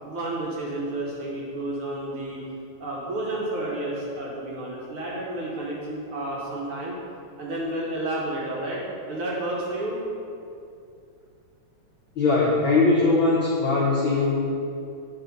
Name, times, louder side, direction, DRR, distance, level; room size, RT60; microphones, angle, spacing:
voice 1, 0.0-7.0 7.4-10.0, right 1 dB, 60° right, -5 dB, 1.6 m, -31 dB
voice 2, 12.2-14.5, left 3 dB, 70° left, -6 dB, 1.2 m, -21 dB
9.1 x 4.1 x 5.2 m, 2.5 s
omnidirectional pair, 3.3 m